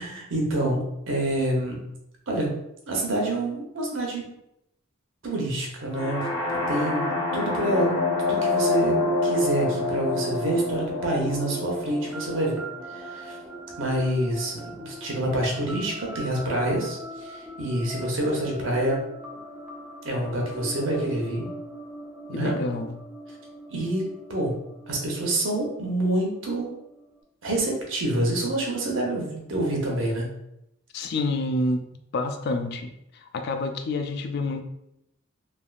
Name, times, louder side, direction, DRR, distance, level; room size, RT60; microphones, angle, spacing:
voice 1, 0.0-1.8 2.3-2.5 2.9-4.3 5.2-7.9 8.3-12.6 12.9-13.4 13.8-19.0 20.0-21.5 22.3-22.5 23.7-24.0 24.3-24.5 24.9-26.7 27.4-30.3, right 1 dB, 80° right, -1 dB, 0.8 m, -27 dB
sound 1, 5.9-13.8, left 2 dB, 85° left, 0.7 m, -27 dB
sound 2, 7.7-27.2, right 1 dB, 5° right, 0.4 m, -42 dB
voice 2, 22.3-22.9 30.9-31.8 32.1-34.6, left 2 dB, 55° left, 6 dB, 0.3 m, -28 dB
3.3 x 2.3 x 2.4 m, 0.82 s
head